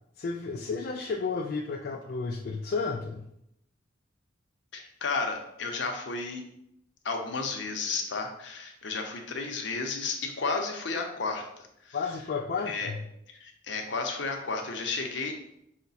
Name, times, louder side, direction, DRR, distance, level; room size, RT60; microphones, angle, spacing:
voice 1, 0.2-3.3 11.9-13.0, left 4 dB, 50° left, 1 dB, 0.3 m, -32 dB
voice 2, 4.7-6.4 7.0-11.5 11.8-12.0 12.7-12.9 13.3-15.3, left 4 dB, 65° left, 3 dB, 0.7 m, -32 dB
5.7 x 2.1 x 4.0 m, 0.77 s
head